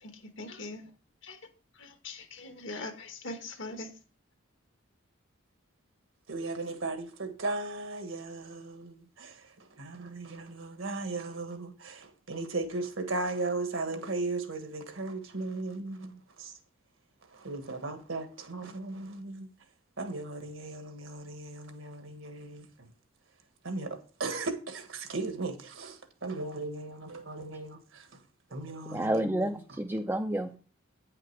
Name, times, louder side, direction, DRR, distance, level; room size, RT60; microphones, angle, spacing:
voice 1, 0.0-0.9 1.2-1.4 1.8-3.9, left 2 dB, 65° left, 1.4 m, -41 dB
voice 2, 6.3-16.6 17.2-19.5 20.0-22.9 23.6-28.2 28.5-29.6, right 3 dB, 75° right, 1.5 m, -37 dB
voice 3, 28.9-30.6, right 1 dB, 10° right, 0.4 m, -30 dB
9.0 x 5.8 x 4.7 m
head